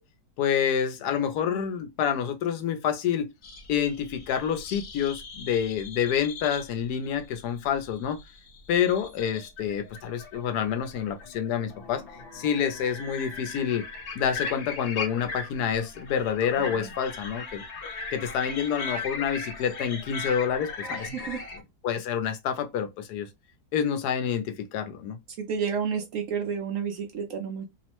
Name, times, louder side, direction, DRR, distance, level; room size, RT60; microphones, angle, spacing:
voice 1, 0.4-3.3 3.7-8.2 8.7-12.0 12.3-13.9 14.2-17.6 18.1-21.3 21.8-23.3 23.7-25.2, left 8 dB, 80° left, 1.1 m, -28 dB
sound 1, 3.4-21.6, left 4 dB, 60° left, 0.8 m, -39 dB
voice 2, 21.1-21.4 25.4-27.6, right 6 dB, 70° right, 0.8 m, -31 dB
3.0 x 2.0 x 2.8 m
omnidirectional pair, 1.7 m